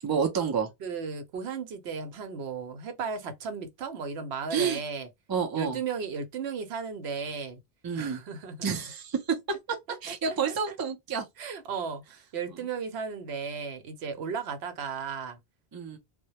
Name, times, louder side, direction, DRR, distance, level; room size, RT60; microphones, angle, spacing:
voice 1, 0.0-0.7 4.5-4.8 5.3-5.8 7.8-8.2 8.6-11.2 15.7-16.0, right 6 dB, 35° right, 0.4 m, -29 dB
voice 2, 0.8-5.1 5.5-7.6 7.9-8.6 9.9-10.7 11.4-15.4, right 5 dB, 80° right, 0.9 m, -35 dB
2.1 x 2.1 x 2.8 m
omnidirectional pair, 1.1 m